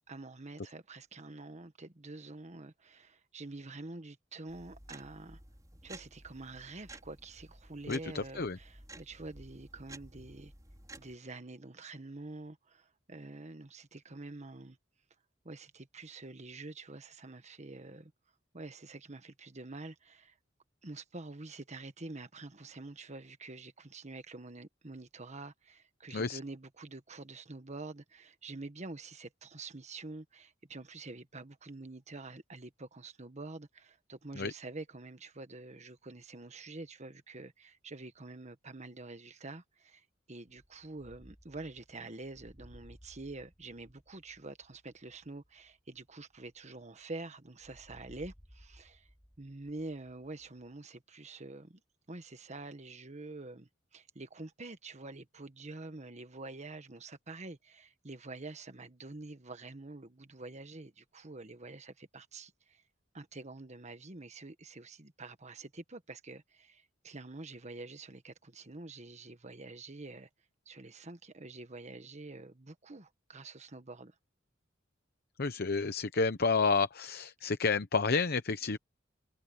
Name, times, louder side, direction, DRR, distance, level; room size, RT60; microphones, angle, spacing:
voice 1, 0.1-5.4 5.8-10.5 11.0-14.8 15.4-18.1 18.5-20.4 20.8-49.1 49.4-51.8 52.1-62.8 63.1-70.3 70.7-74.1, right 2 dB, 35° right, 1.4 m, -47 dB
sound 1, 4.5-11.2, right 2 dB, 20° right, 4.5 m, -53 dB
voice 2, 7.9-8.6 26.1-26.4 34.4-34.5 75.4-78.8, left 4 dB, 55° left, 0.9 m, -30 dB
sound 2, 40.5-47.1 47.6-50.8, equal, ahead, 3.4 m, -59 dB
head